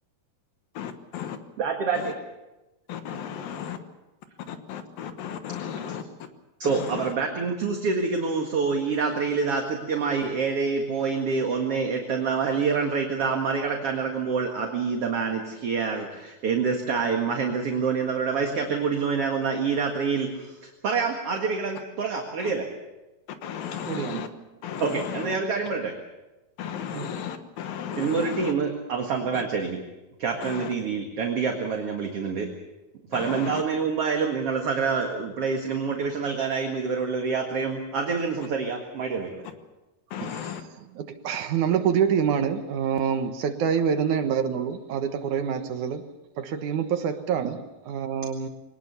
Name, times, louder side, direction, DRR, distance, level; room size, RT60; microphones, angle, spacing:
voice 1, 0.7-1.4 1.9-2.1 2.9-3.8 4.5-6.0 6.6-7.1 22.4-22.5 23.4-24.3 24.6-25.4 26.6-28.5 29.3-29.4 30.4-30.7 33.1-33.6 40.1-40.6, left 8 dB, 75° left, 3.1 m, -35 dB
voice 2, 1.6-2.1 6.6-22.7 24.8-25.9 28.0-29.8 30.2-32.5 33.1-39.4, right 5 dB, 45° right, 2.4 m, -27 dB
voice 3, 23.9-24.3 26.9-27.1 40.2-40.4 41.0-46.0 46.4-48.5, right 7 dB, 65° right, 2.5 m, -26 dB
23.0 x 19.5 x 7.0 m
omnidirectional pair, 4.3 m